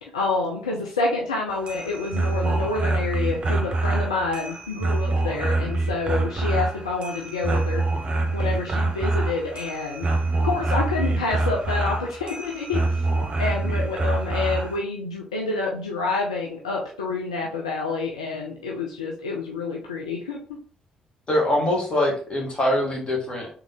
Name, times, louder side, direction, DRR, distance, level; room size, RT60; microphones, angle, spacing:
voice 1, 0.0-7.8 8.3-10.1 10.4-13.0 13.4-20.4, left 3 dB, 85° left, -1 dB, 0.5 m, -28 dB
sound 1, 1.5-14.8, right 2 dB, 35° right, 0.9 m, -25 dB
voice 2, 21.3-23.5, left 1 dB, 35° left, -1 dB, 1.7 m, -23 dB
3.7 x 3.0 x 3.5 m, 0.43 s
figure-of-eight pair, 45°, 3 cm